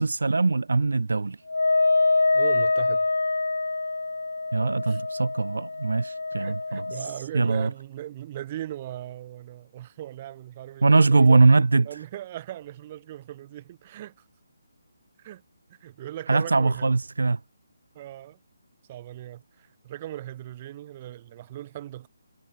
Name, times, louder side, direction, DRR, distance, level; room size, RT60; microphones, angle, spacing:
voice 1, 0.0-1.4 4.5-6.8 7.3-7.7 10.8-11.9 16.3-17.4, right 3 dB, 80° right, 0.5 m, -21 dB
Wind instrument woodwind instrument, 1.5-7.1, left 3 dB, 85° left, 0.7 m, -25 dB
voice 2, 2.3-3.0 4.9-5.0 6.4-11.4 11.8-14.1 15.2-15.4 15.8-17.0 17.9-18.4 18.9-22.1, right 13 dB, 30° right, 3.0 m, -38 dB
figure-of-eight pair, 160°, 0 cm